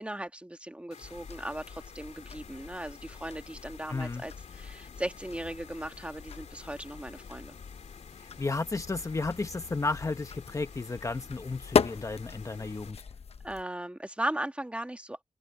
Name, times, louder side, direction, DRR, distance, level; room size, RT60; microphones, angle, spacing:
voice 1, 0.0-7.5 13.4-15.2, right 1 dB, 10° right, 1.7 m, -37 dB
sound 1, 0.9-12.9, left 6 dB, 75° left, 3.0 m, -52 dB
sound 2, 1.0-13.6, left 6 dB, 60° left, 1.0 m, -37 dB
voice 2, 3.9-4.2 8.4-13.0, left 3 dB, 25° left, 0.9 m, -33 dB
open air
wide cardioid pair, 120°, 12 cm